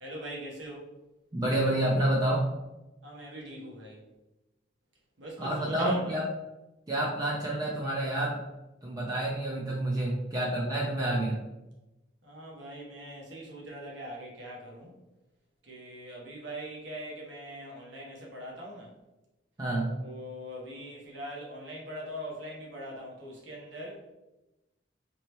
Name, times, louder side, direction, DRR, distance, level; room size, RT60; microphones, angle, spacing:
voice 1, 0.0-0.9 3.0-4.0 5.2-6.2 12.2-14.9 15.6-18.9 20.0-24.0, equal, 75° right, -3 dB, 1.1 m, -41 dB
voice 2, 1.3-2.5 5.4-6.2 6.9-8.4 8.8-11.4 19.6-19.9, right 1 dB, 20° right, -5 dB, 0.5 m, -28 dB
3.2 x 2.9 x 2.9 m, 0.99 s
head